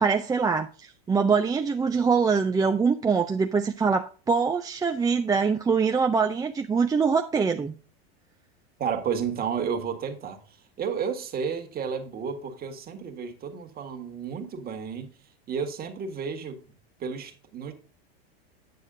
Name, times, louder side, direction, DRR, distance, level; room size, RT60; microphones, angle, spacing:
voice 1, 0.0-7.7, right 5 dB, 10° right, 0.5 m, -24 dB
voice 2, 8.8-10.4 10.8-15.1 15.5-16.6 17.0-17.7, right 6 dB, 30° right, 1.7 m, -32 dB
9.4 x 6.3 x 3.7 m
supercardioid pair, 115°, 31 cm